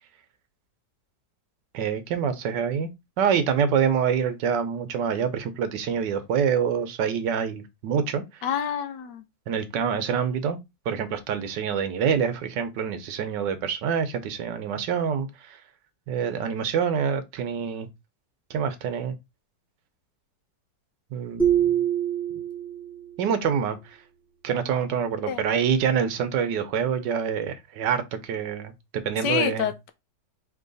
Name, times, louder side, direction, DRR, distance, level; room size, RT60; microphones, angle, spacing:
voice 1, 1.7-2.9 3.2-8.2 9.5-10.6 10.9-15.6 16.1-17.9 18.5-19.1 21.1-21.7 23.2-24.0 24.4-29.7, right 7 dB, 80° right, 1.4 m, -26 dB
voice 2, 8.4-9.2 25.3-25.4 29.2-29.9, left 8 dB, 80° left, 1.3 m, -27 dB
sound 1, 21.4-23.1, right 9 dB, 5° left, 0.9 m, -24 dB
4.6 x 2.9 x 3.9 m
omnidirectional pair, 1.9 m